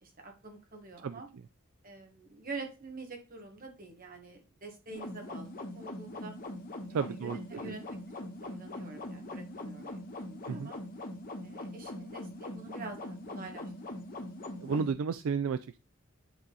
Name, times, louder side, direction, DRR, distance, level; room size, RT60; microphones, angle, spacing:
voice 1, 0.0-1.3 1.8-5.5 5.7-6.3 6.9-7.8 8.4-10.0 10.3-10.8 11.4-14.0, right 3 dB, 40° right, 3 dB, 1.7 m, -46 dB
sound 1, 4.9-14.9, left 1 dB, 40° left, 1.3 m, -42 dB
voice 2, 6.9-7.7 10.5-10.7 14.6-15.8, right 6 dB, 70° right, 13 dB, 0.4 m, -33 dB
9.7 x 3.8 x 4.1 m, 0.30 s
head